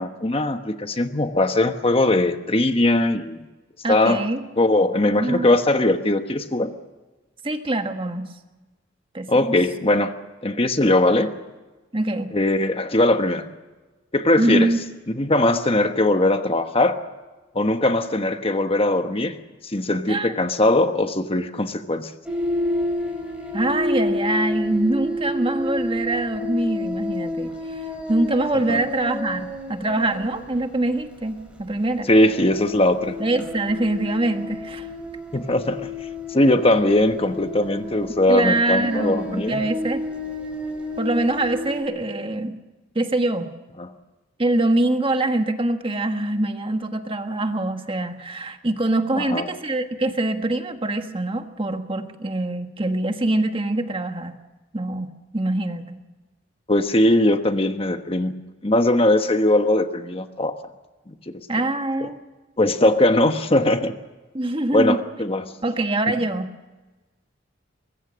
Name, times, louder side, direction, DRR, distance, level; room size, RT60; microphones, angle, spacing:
voice 1, 0.0-3.5 3.9-4.2 4.6-6.7 9.3-10.1 10.4-11.3 12.3-13.5 14.1-14.7 15.2-17.0 17.5-19.4 19.6-22.1 28.7-28.8 32.1-33.1 35.3-35.9 36.3-39.6 43.8-43.9 49.1-49.5 56.7-58.3 58.6-60.5 61.1-61.4 62.6-63.9 64.7-65.4, left 1 dB, 30° left, 7 dB, 1.2 m, -20 dB
voice 2, 3.8-4.4 5.2-5.5 7.4-8.3 9.1-9.5 11.9-12.3 14.4-14.8 20.1-20.3 23.5-32.1 33.2-34.9 38.3-40.0 41.0-42.6 42.9-43.5 44.4-54.4 54.7-56.0 61.5-62.2 64.3-65.0 65.6-66.5, right 2 dB, 30° right, 6 dB, 1.5 m, -24 dB
sound 1, 22.2-41.8, left 1 dB, 5° right, 5.4 m, -30 dB
24.0 x 21.5 x 6.3 m, 1.2 s
head